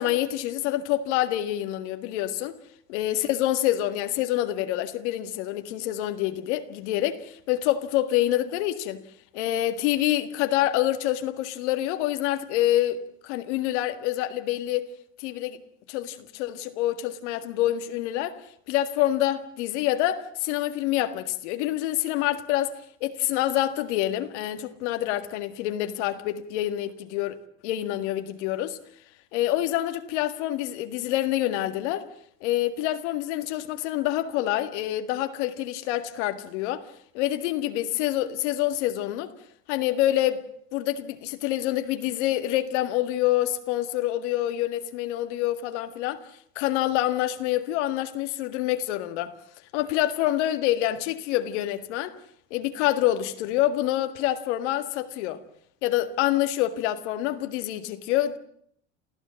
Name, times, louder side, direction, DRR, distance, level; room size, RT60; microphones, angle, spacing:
voice 1, 0.0-2.6 2.9-9.0 9.3-14.8 15.2-15.6 15.9-18.4 18.7-22.7 23.0-27.4 27.6-28.8 29.3-32.1 32.4-36.8 37.1-39.3 39.7-40.4 40.7-46.2 46.6-49.3 49.7-52.2 52.5-55.4 55.8-58.4, left 13 dB, 80° left, 1.9 m, -26 dB
28.0 x 14.5 x 7.6 m
supercardioid pair, 95°, 34 cm